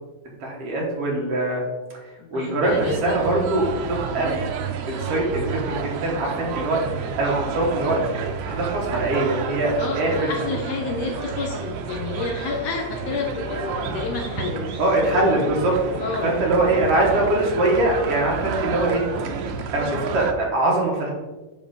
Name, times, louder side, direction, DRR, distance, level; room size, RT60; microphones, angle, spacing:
voice 1, 0.4-1.6 2.3-4.4 4.9-6.8 7.2-8.0 8.4-10.3 14.8-15.7 16.2-19.0 19.7-21.1, right 2 dB, 60° right, -2 dB, 2.2 m, -22 dB
voice 2, 2.2-3.2 9.8-14.8 15.1-15.4 16.0-16.3, left 4 dB, 70° left, 2 dB, 1.7 m, -30 dB
sound 1, 2.7-20.3, right 5 dB, 75° right, 1.4 m, -30 dB
10.0 x 3.5 x 4.0 m, 1.2 s
omnidirectional pair, 3.4 m